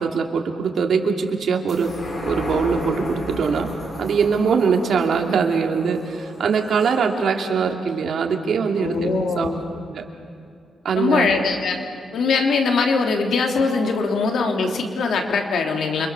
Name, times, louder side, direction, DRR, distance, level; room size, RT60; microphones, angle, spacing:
voice 1, 0.0-1.9 2.2-3.7 4.0-9.5 9.9-10.0 10.8-11.3, right 5 dB, 65° right, 3 dB, 2.7 m, -22 dB
sound 1, 1.7-8.5 8.9-9.0, left 2 dB, 35° left, 5.7 m, -34 dB
voice 2, 8.8-9.6 10.9-11.8 12.1-16.1, left 4 dB, 70° left, 2 dB, 3.3 m, -21 dB
29.0 x 25.5 x 7.0 m, 2.3 s
wide cardioid pair, 130°, 0 cm